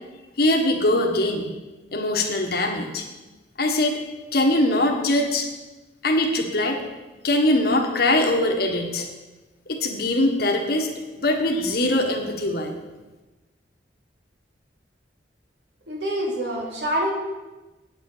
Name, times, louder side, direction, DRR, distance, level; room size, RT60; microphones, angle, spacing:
voice 1, 0.4-1.5 1.9-3.0 3.6-4.0 4.3-5.5 6.0-6.8 7.2-9.1 9.7-12.7, left 1 dB, 60° left, 1 dB, 1.6 m, -22 dB
voice 2, 15.9-17.1, equal, 70° right, -2 dB, 2.9 m, -26 dB
8.6 x 8.2 x 6.8 m, 1.1 s
head